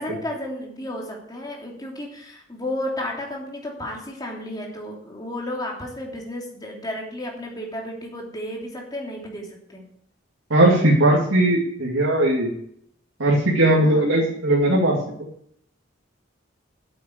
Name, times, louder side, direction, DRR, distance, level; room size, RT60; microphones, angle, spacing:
voice 1, 0.0-9.8 13.8-14.0, left 1 dB, 20° left, -1 dB, 3.1 m, -33 dB
voice 2, 10.5-12.5 13.2-15.0, right 1 dB, 85° right, -5 dB, 2.6 m, -18 dB
8.5 x 8.4 x 8.5 m, 0.68 s
head